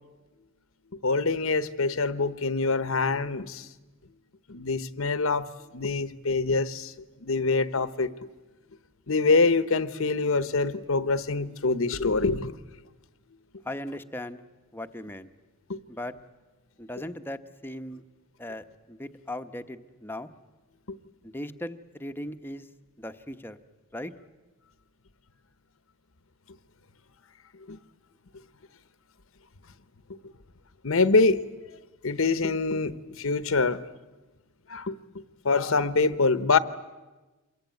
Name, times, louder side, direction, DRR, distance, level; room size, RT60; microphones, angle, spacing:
voice 1, 1.0-3.7 4.5-5.5 5.7-6.9 7.2-8.1 9.1-12.5 15.7-15.8 20.9-21.0 27.7-27.8 30.8-31.4 32.0-33.8 34.7-35.0 35.4-36.6, left 3 dB, 70° left, 14 dB, 1.0 m, -25 dB
voice 2, 13.6-14.4 14.7-15.3 15.9-16.2 16.8-18.0 18.4-20.3 21.2-22.7 23.0-23.6 23.9-24.1, left 1 dB, 10° left, 8 dB, 1.0 m, -38 dB
27.0 x 22.0 x 9.3 m, 1.2 s
head